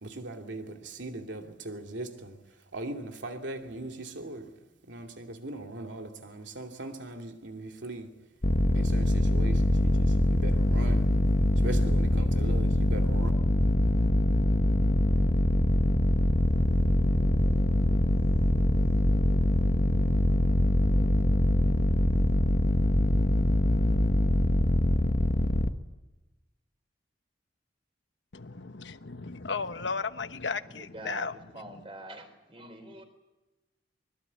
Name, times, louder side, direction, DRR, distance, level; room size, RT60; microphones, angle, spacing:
voice 1, 0.0-2.4 2.7-4.5 4.9-8.1 8.7-11.1 11.6-13.3, right 2 dB, 80° right, 2.7 m, -39 dB
sound 1, 8.4-25.7, left 1 dB, 50° left, 1.2 m, -24 dB
sound 2, 16.4-25.8, equal, 25° left, 3.4 m, -46 dB
voice 2, 28.3-31.4, left 4 dB, 75° left, 1.2 m, -35 dB
voice 3, 30.8-31.3 31.5-33.0, right 1 dB, 30° right, 4.3 m, -45 dB
24.5 x 21.5 x 8.4 m
head